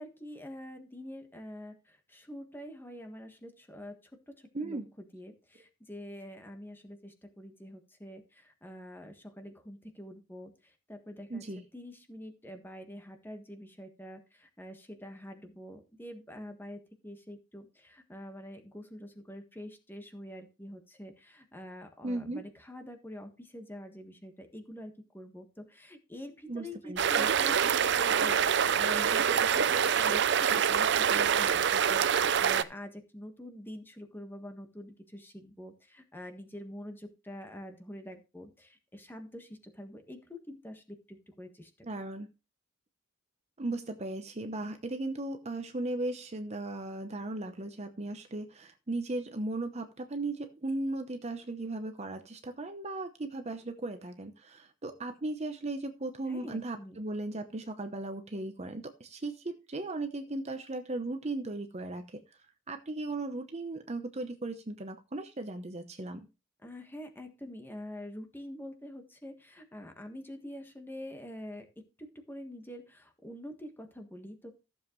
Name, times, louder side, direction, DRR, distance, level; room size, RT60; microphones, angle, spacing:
voice 1, 0.0-4.0 4.3-41.7 56.3-57.0 66.6-71.7 72.0-74.5, equal, 10° left, 5 dB, 1.5 m, -46 dB
voice 2, 11.3-11.6 22.0-22.4 26.5-27.3 41.8-42.3 43.6-62.2 62.7-66.3, right 2 dB, 30° right, 7 dB, 0.8 m, -37 dB
sound 1, 27.0-32.6, right 7 dB, 60° right, 0.6 m, -26 dB
14.0 x 7.4 x 3.1 m, 0.29 s
head